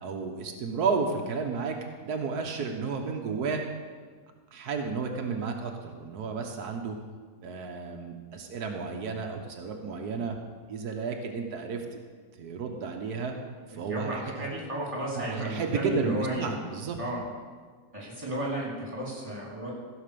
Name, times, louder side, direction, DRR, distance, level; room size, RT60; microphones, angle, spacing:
voice 1, 0.0-3.6 4.5-6.9 7.4-10.4 10.7-12.0 12.4-13.3 13.7-14.5 15.1-17.0, right 5 dB, 90° right, 3 dB, 1.6 m, -32 dB
voice 2, 13.7-16.5 17.0-17.2 17.9-19.7, right 1 dB, 20° right, -4 dB, 3.3 m, -33 dB
15.0 x 5.9 x 6.8 m, 1.5 s
omnidirectional pair, 1.6 m